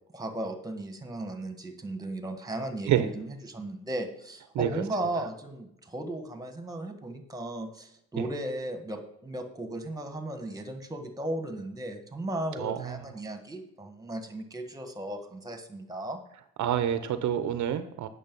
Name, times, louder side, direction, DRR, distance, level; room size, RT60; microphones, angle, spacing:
voice 1, 0.1-16.2, right 1 dB, 10° right, 6 dB, 1.5 m, -36 dB
voice 2, 16.6-18.1, right 10 dB, 70° right, 11 dB, 0.7 m, -27 dB
8.9 x 6.5 x 5.3 m, 0.75 s
cardioid pair, 90°, 30 cm